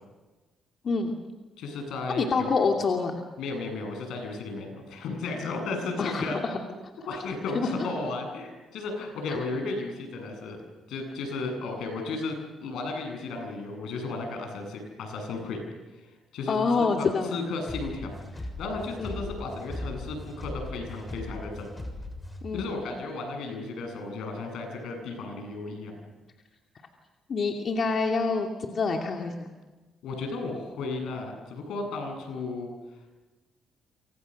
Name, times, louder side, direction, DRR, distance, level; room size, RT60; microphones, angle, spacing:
voice 1, 1.6-2.5 3.4-6.4 7.0-10.6 10.9-15.6 15.9-21.7 22.5-26.0 30.0-32.7, left 3 dB, 80° left, 4 dB, 7.9 m, -34 dB
voice 2, 2.2-3.1 6.0-6.6 7.5-7.7 16.5-17.4 19.0-19.2 22.4-22.7 27.3-29.5, left 4 dB, 50° left, 2 dB, 2.6 m, -26 dB
sound 1, 17.6-22.7, left 1 dB, 10° left, 6.9 m, -38 dB
28.5 x 25.5 x 6.6 m, 1.2 s
cardioid pair, 90°, 0 cm